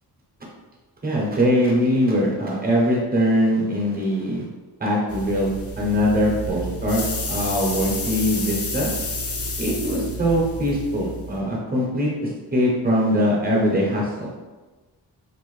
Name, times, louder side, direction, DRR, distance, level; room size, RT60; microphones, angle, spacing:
voice 1, 1.0-4.4 4.8-8.9 9.6-14.3, equal, 20° right, -3 dB, 0.9 m, -22 dB
sound 1, 5.1-11.4, left 1 dB, 35° left, 0.4 m, -30 dB
2.9 x 2.6 x 3.2 m, 1.2 s
wide cardioid pair, 110°, 40 cm